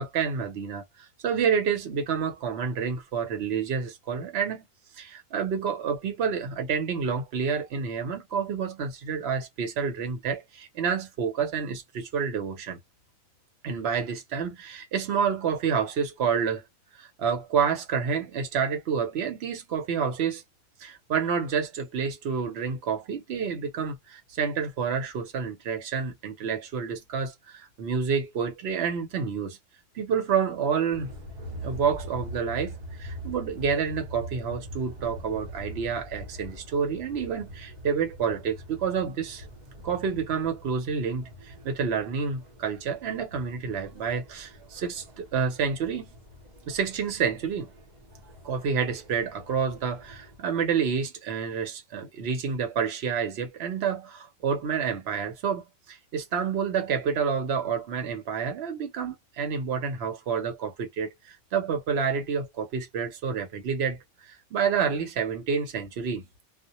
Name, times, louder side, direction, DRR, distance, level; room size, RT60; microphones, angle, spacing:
voice 1, 0.0-4.6 5.0-12.8 13.6-16.7 17.0-20.4 20.8-29.6 29.9-31.1 31.6-39.5 39.8-46.0 46.7-47.7 48.4-66.2, right 6 dB, 85° right, 1.0 m, -29 dB
sound 1, 30.9-50.4, equal, 50° right, 0.8 m, -44 dB
2.1 x 2.1 x 2.8 m
omnidirectional pair, 1.0 m